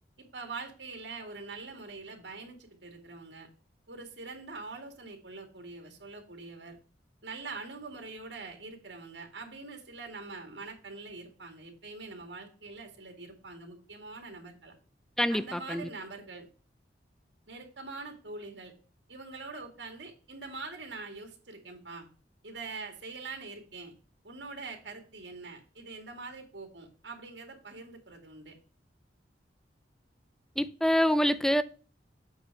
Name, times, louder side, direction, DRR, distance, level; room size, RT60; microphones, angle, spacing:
voice 1, 0.2-3.5 3.9-6.8 7.2-14.7 15.3-16.5 17.5-18.7 19.1-22.1 22.4-23.9 24.2-28.6, right 3 dB, 80° right, 2.1 m, -44 dB
voice 2, 15.2-15.9 30.6-31.6, equal, 5° left, 0.4 m, -26 dB
8.5 x 4.1 x 5.7 m
head